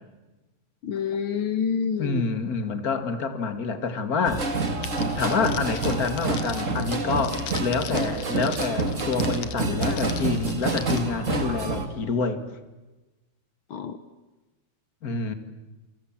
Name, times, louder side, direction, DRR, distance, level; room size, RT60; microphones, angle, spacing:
voice 1, 0.8-2.2 9.7-10.0 13.7-14.0, left 7 dB, 75° left, 11 dB, 1.2 m, -28 dB
voice 2, 2.0-4.5 5.1-12.4 15.0-15.3, left 4 dB, 35° left, 9 dB, 1.9 m, -27 dB
sound 1, 4.2-11.9, right 3 dB, 30° right, 1.9 m, -28 dB
Crackle, 4.8-11.0, left 9 dB, 55° left, 2.4 m, -40 dB
28.5 x 25.5 x 7.5 m, 1.1 s
omnidirectional pair, 3.9 m